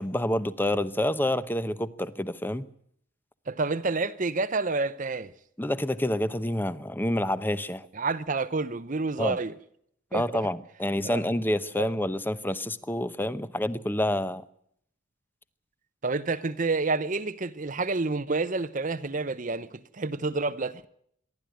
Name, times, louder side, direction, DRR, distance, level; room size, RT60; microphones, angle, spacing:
voice 1, 0.0-2.7 5.6-7.8 9.2-9.4 10.1-14.4, left 1 dB, 10° left, 0.8 m, -28 dB
voice 2, 3.5-5.3 7.9-9.6 10.1-10.5 11.0-11.2 11.7-11.9 16.0-20.9, right 3 dB, 40° right, 0.8 m, -29 dB
26.5 x 12.0 x 9.3 m
head